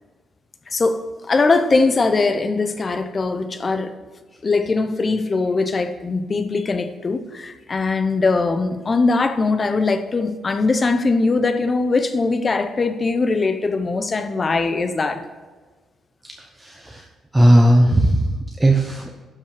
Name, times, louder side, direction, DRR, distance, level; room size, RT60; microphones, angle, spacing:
voice 1, 0.7-3.9 4.4-15.3, left 3 dB, 30° left, 0.7 m, -21 dB
voice 2, 16.6-17.1 17.3-19.2, right 1 dB, 10° right, 0.8 m, -16 dB
11.5 x 5.7 x 4.9 m
cardioid pair, 130°, 0 cm